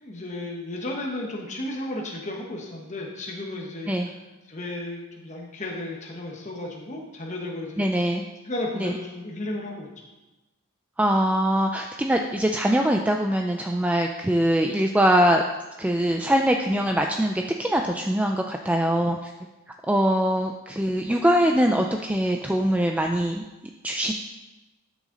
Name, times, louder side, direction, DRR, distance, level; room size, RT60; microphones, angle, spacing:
voice 1, 0.0-4.1 4.5-7.8 8.4-9.9, left 1 dB, 30° left, -1 dB, 1.1 m, -34 dB
voice 2, 7.8-8.2 8.8-8.9 11.0-15.4 15.8-19.3 19.9-23.4 23.8-24.1, equal, 5° right, 3 dB, 0.3 m, -22 dB
12.0 x 6.2 x 3.8 m, 1.1 s
head